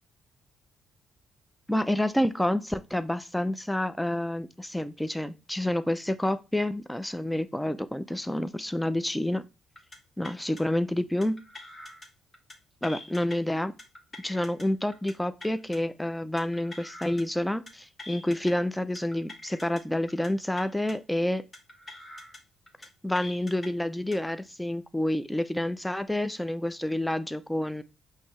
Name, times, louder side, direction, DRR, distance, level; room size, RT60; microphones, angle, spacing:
voice 1, 1.7-9.4 10.2-11.4 12.8-13.7 14.2-21.4 23.0-27.8, left 1 dB, 5° left, 0.4 m, -28 dB
sound 1, 9.8-10.0 10.2-10.6 11.2-12.1 12.3-12.5 12.8-13.3 13.8-14.6 14.9-15.1 15.4-15.8 16.4-17.2 17.5-17.7 18.0-18.5 18.9-19.8 20.1-20.3 20.6-20.9 21.5-22.4 22.7-22.9 23.1-23.7 24.1-24.3, left 2 dB, 30° left, 1.3 m, -45 dB
5.2 x 2.8 x 3.1 m
supercardioid pair, 60°, 0 cm